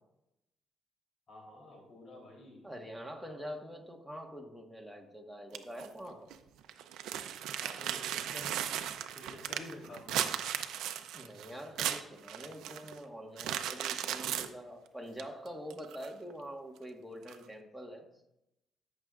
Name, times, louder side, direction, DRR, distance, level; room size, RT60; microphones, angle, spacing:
voice 1, 1.3-2.7 3.3-3.4 7.6-8.6 9.1-10.2, left 1 dB, 55° left, -1 dB, 3.2 m, -50 dB
voice 2, 2.6-6.3 11.1-18.1, equal, ahead, 3 dB, 1.5 m, -45 dB
sound 1, 5.5-5.9 6.3-6.4 6.6-13.0 13.4-14.5 15.2-15.3 15.7-16.3 17.3-17.4, right 10 dB, 85° right, 0.5 m, -36 dB
13.5 x 6.4 x 2.5 m, 0.86 s
cardioid pair, 90°, 0 cm